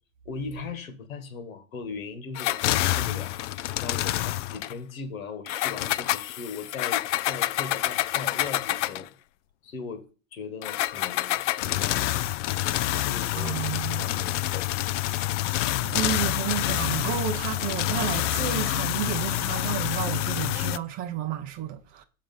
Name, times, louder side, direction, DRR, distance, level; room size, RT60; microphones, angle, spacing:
voice 1, 0.3-3.3 3.8-9.1 9.6-10.0 10.3-12.3 12.9-14.7, left 5 dB, 80° left, 1.8 m, -39 dB
sound 1, 2.3-4.7 5.5-9.1 10.6-20.8, left 15 dB, 65° left, 0.5 m, -27 dB
voice 2, 13.3-14.4 15.8-22.0, right 11 dB, 20° right, 0.5 m, -32 dB
7.0 x 5.0 x 5.5 m
supercardioid pair, 145°, 40 cm